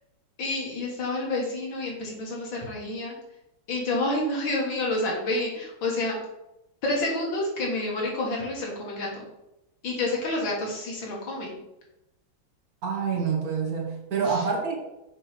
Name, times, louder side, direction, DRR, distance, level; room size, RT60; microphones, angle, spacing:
voice 1, 0.4-3.1 3.7-6.2 6.8-9.2 9.8-11.6 14.2-14.4, left 2 dB, 70° left, -2 dB, 2.6 m, -29 dB
voice 2, 12.8-14.9, right 5 dB, 50° right, 0 dB, 1.6 m, -27 dB
6.7 x 3.3 x 5.9 m, 0.89 s
omnidirectional pair, 2.2 m